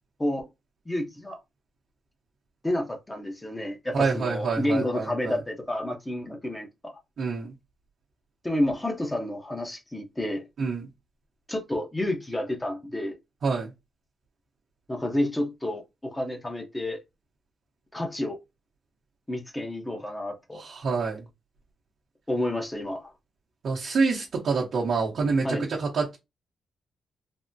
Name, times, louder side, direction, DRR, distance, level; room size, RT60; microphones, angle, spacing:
voice 1, 0.9-1.4 2.6-7.0 8.4-10.4 11.5-13.1 14.9-17.0 17.9-18.4 19.3-20.6 22.3-23.1 25.4-25.7, left 1 dB, 15° left, 0.7 m, -30 dB
voice 2, 3.9-5.3 7.2-7.5 10.6-10.9 13.4-13.7 20.6-21.2 23.6-26.2, right 4 dB, 65° right, 0.8 m, -27 dB
3.4 x 2.0 x 2.6 m
cardioid pair, 110°, 0 cm